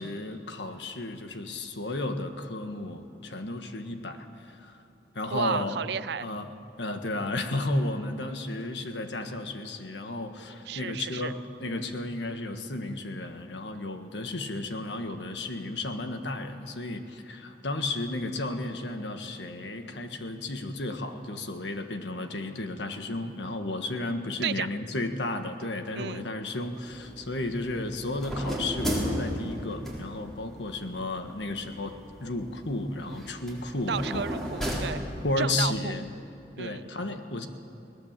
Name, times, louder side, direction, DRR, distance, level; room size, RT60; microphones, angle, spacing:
voice 1, 0.0-4.8 5.1-5.8 6.2-6.5 6.8-34.3 35.2-36.1 36.6-37.5, left 2 dB, 85° left, 6 dB, 1.6 m, -33 dB
voice 2, 5.3-6.3 10.7-11.3 24.4-24.7 25.9-26.3 33.9-35.0 35.4-36.0 36.6-36.9, right 6 dB, 70° right, 17 dB, 0.5 m, -32 dB
sound 1, 26.7-35.6, equal, ahead, 4.1 m, -35 dB
21.5 x 18.5 x 7.5 m, 2.8 s
head